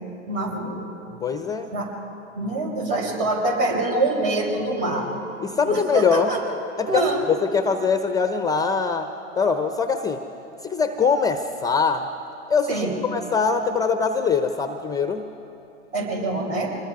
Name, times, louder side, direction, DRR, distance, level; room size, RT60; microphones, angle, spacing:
voice 1, 0.3-0.8 1.7-1.9 2.3-5.1 5.7-6.4 6.9-7.2 12.7-13.0 15.9-16.7, right 2 dB, 50° right, 1 dB, 5.6 m, -25 dB
voice 2, 1.2-1.7 5.4-6.4 6.8-10.2 10.6-12.1 12.5-15.2, left 5 dB, 10° left, 8 dB, 0.7 m, -23 dB
26.0 x 20.5 x 4.8 m, 2.9 s
hypercardioid pair, 105°, 36 cm